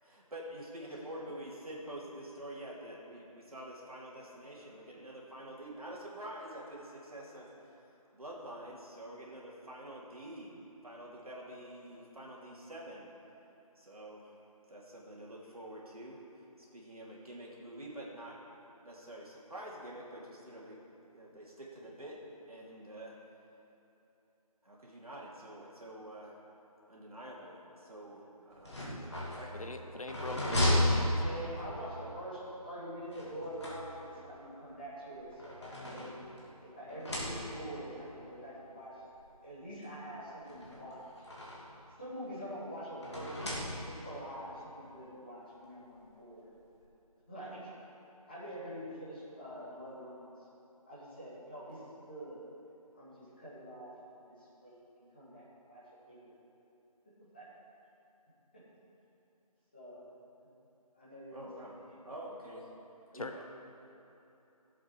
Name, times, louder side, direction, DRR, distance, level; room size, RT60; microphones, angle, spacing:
voice 1, 0.0-7.7 8.1-10.5 10.8-13.1 13.7-14.4 14.7-18.4 18.8-20.8 21.1-22.2 22.5-23.2 24.6-26.3 26.9-28.8 29.2-29.7 61.3-61.8 62.0-62.7 63.1-63.4, right 1 dB, 70° right, -4 dB, 2.8 m, -47 dB
voice 2, 0.8-1.3 31.1-36.1 36.7-38.9 39.4-41.0 42.0-43.5 43.8-46.5 47.3-47.7 48.3-50.4 50.8-52.4 52.9-54.4 54.6-56.3 57.3-57.4 59.7-60.0 60.9-62.0, equal, 15° left, -11 dB, 2.0 m, -45 dB
sound 1, 28.5-31.8 33.1-34.3 35.1-36.5 36.9-37.8 38.8-38.9 39.2-39.3 40.5-41.8 43.0-44.2, left 1 dB, 45° left, 2.6 m, -34 dB
voice 3, 29.5-31.3 63.1-63.4, left 2 dB, 65° left, 6 dB, 0.8 m, -43 dB
17.5 x 7.8 x 4.7 m, 3.0 s
figure-of-eight pair, 180°, 20 cm